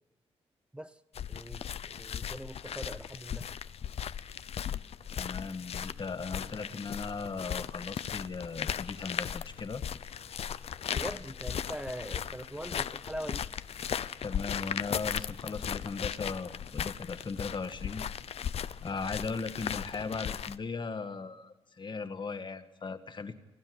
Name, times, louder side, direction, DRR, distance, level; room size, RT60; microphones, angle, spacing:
sound 1, 1.1-20.5, left 8 dB, 70° left, 0.7 m, -37 dB
voice 1, 1.3-3.5 10.9-13.5, right 1 dB, 10° right, 11 dB, 0.8 m, -42 dB
voice 2, 5.1-9.8 13.9-18.1 18.8-23.3, left 4 dB, 45° left, 9 dB, 1.8 m, -38 dB
sound 2, 5.5-20.0, right 3 dB, 80° right, 7.8 m, -64 dB
29.0 x 12.5 x 9.6 m, 1.1 s
cardioid pair, 75°, 11 cm